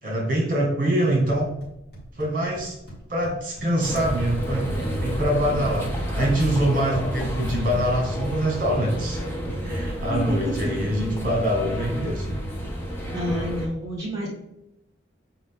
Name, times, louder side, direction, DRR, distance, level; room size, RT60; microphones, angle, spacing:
voice 1, 0.0-1.5 2.2-2.8 3.1-9.2 9.6-12.4, right 1 dB, 45° right, -1 dB, 1.9 m, -24 dB
sound 1, 1.1-8.0, right 1 dB, 50° left, 2.1 m, -45 dB
sound 2, 3.8-13.7, equal, 10° left, 1.1 m, -30 dB
voice 2, 13.1-14.3, equal, 15° right, -6 dB, 1.6 m, -29 dB
7.1 x 4.6 x 3.6 m, 0.87 s
head